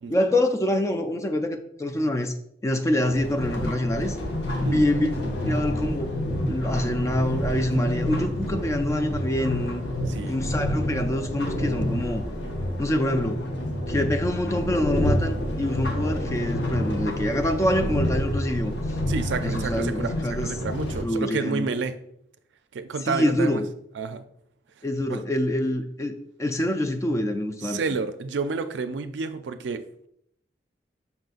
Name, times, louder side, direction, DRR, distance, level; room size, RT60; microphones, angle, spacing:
voice 1, 0.1-2.3 2.6-4.2 4.6-5.1 5.5-6.2 6.5-9.8 10.3-12.2 12.8-13.4 13.9-18.7 19.4-20.6 21.0-21.7 23.0-23.7 24.8-27.8, left 1 dB, 15° left, 6 dB, 0.3 m, -25 dB
sound 1, 3.1-21.0, equal, 75° left, 0.8 m, -28 dB
voice 2, 7.6-7.9 10.1-10.4 19.1-21.9 22.7-23.6 24.0-24.2 25.1-25.2 27.6-30.1, right 4 dB, 80° right, 10 dB, 0.4 m, -30 dB
5.6 x 3.9 x 2.4 m, 0.71 s
head